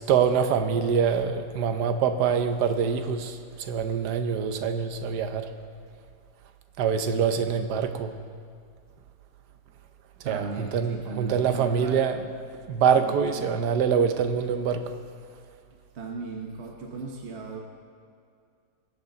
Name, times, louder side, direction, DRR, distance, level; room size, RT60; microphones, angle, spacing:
voice 1, 0.1-5.5 6.8-8.2 10.2-12.2 12.7-14.9, right 7 dB, 70° right, 8 dB, 1.3 m, -25 dB
voice 2, 10.2-12.0 13.0-13.5 15.9-17.6, right 4 dB, 45° right, 0 dB, 1.2 m, -37 dB
20.0 x 8.6 x 3.9 m, 2.3 s
omnidirectional pair, 1.9 m